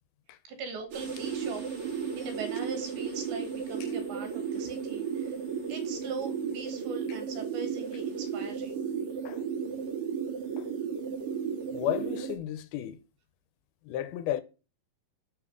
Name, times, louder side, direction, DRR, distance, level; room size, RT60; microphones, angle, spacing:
voice 1, 0.5-5.3 5.7-8.8, right 4 dB, 75° right, 3.3 m, -41 dB
sound 1, 0.9-12.4, right 7 dB, 55° right, 1.6 m, -34 dB
voice 2, 11.7-13.0 13.8-14.4, left 12 dB, 85° left, 2.5 m, -33 dB
10.0 x 3.8 x 6.2 m
omnidirectional pair, 4.5 m